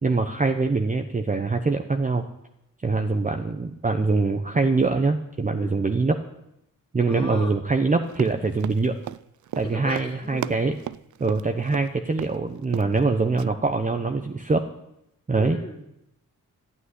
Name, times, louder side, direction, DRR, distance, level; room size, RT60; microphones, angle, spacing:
voice 1, 0.0-2.3 2.8-6.2 6.9-9.0 9.5-10.8 11.2-14.7 15.3-15.6, right 3 dB, 25° right, 5 dB, 0.9 m, -23 dB
voice 2, 7.1-7.6 9.6-10.6 15.3-16.0, left 1 dB, 15° left, 0 dB, 2.6 m, -37 dB
Run, 8.1-11.9 12.2-12.4 12.6-13.0 13.4-13.5, right 12 dB, 60° right, 0.4 m, -35 dB
12.5 x 8.9 x 9.8 m, 0.82 s
wide cardioid pair, 120°, 34 cm